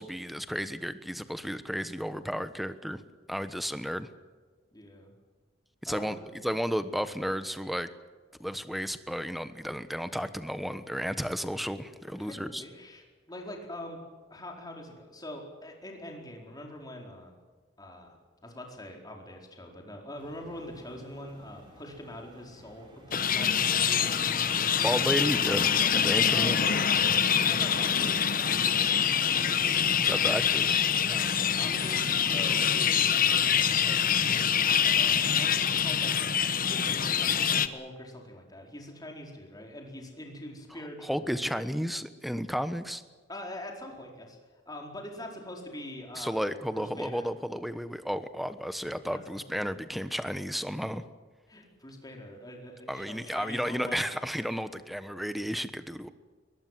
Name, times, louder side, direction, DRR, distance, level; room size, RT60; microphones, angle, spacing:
voice 1, 0.0-3.0 3.3-4.1 5.8-6.2 6.4-7.9 8.4-12.6 24.8-26.8 30.0-30.8 41.0-43.0 46.1-51.0 52.9-56.1, equal, ahead, 11 dB, 1.2 m, -33 dB
voice 2, 4.7-5.1 5.8-6.4 12.2-14.0 14.3-17.3 17.8-18.2 18.4-24.9 25.7-25.9 26.3-26.7 27.2-28.6 31.0-36.2 36.7-41.4 43.3-44.4 44.7-46.5 46.7-47.2 49.1-49.2 49.5-49.7 51.5-54.0, left 1 dB, 20° left, 1 dB, 4.5 m, -44 dB
sound 1, 20.2-32.0, right 1 dB, 25° right, 5.9 m, -54 dB
sound 2, 23.1-37.7, left 8 dB, 45° left, 1.1 m, -25 dB
22.0 x 21.0 x 7.6 m, 1.4 s
head